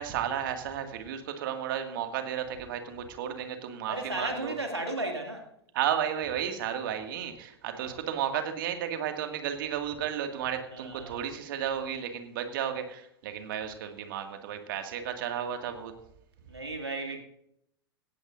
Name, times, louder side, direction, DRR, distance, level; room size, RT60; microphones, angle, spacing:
voice 1, 0.0-4.5 5.7-15.9, right 9 dB, 55° right, 6 dB, 2.1 m, -33 dB
voice 2, 3.9-5.5 7.7-7.9 10.7-11.2 16.5-17.2, right 2 dB, 85° right, 4 dB, 2.3 m, -35 dB
18.0 x 16.0 x 2.6 m, 0.75 s
figure-of-eight pair, 95°, 13 cm